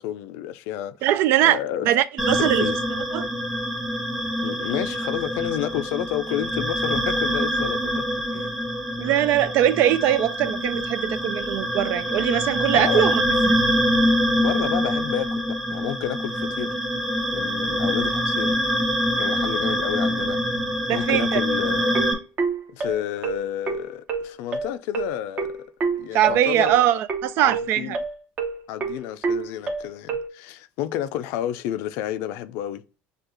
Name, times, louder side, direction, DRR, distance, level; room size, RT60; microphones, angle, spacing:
voice 1, 0.0-1.1 1.4-1.9 2.3-2.8 4.4-8.0 8.3-8.7 12.7-13.0 14.4-16.7 17.3-18.6 19.2-20.4 20.9-22.0 22.7-25.7 26.0-26.8 27.4-28.0 28.7-32.8, left 11 dB, 75° left, 0.4 m, -30 dB
voice 2, 1.0-1.6 1.9-2.7 3.1-3.2 9.0-13.5 20.9-21.4 26.1-28.0, right 12 dB, 60° right, 0.4 m, -21 dB
sound 1, 2.2-22.1, equal, 5° right, 1.3 m, -25 dB
sound 2, 21.9-30.3, right 4 dB, 35° right, 0.8 m, -27 dB
6.7 x 2.4 x 3.0 m
cardioid pair, 140°, 4 cm